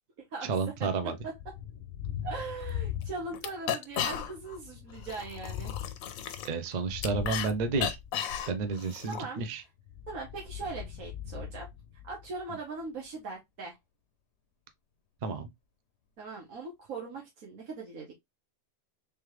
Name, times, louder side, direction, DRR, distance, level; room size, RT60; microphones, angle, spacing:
voice 1, 0.4-1.2 6.4-8.0 8.5-9.6 15.2-15.5, right 4 dB, 45° right, 0.5 m, -31 dB
Thunder, 1.2-3.6 3.9-8.7 9.8-12.4, left 10 dB, 60° left, 0.8 m, -41 dB
voice 2, 2.2-5.7 9.1-9.4 10.1-11.7 12.1-13.8 16.2-18.1, right 4 dB, 90° right, 1.6 m, -40 dB
sound 1, 2.6-2.7 3.0-3.1 3.3-4.6 4.9-7.5 7.8-9.2, left 9 dB, 85° left, 1.1 m, -34 dB
3.5 x 3.4 x 3.1 m
omnidirectional pair, 1.4 m